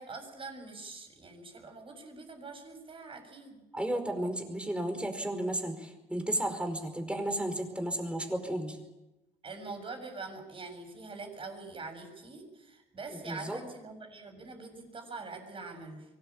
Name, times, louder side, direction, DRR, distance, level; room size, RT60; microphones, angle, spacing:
voice 1, 0.0-3.6 9.4-16.1, right 3 dB, 30° right, 5 dB, 7.1 m, -44 dB
voice 2, 3.7-8.8 13.3-13.6, right 1 dB, 5° right, 6 dB, 4.9 m, -33 dB
23.5 x 18.5 x 8.8 m, 1.0 s
cardioid pair, 110°, 17 cm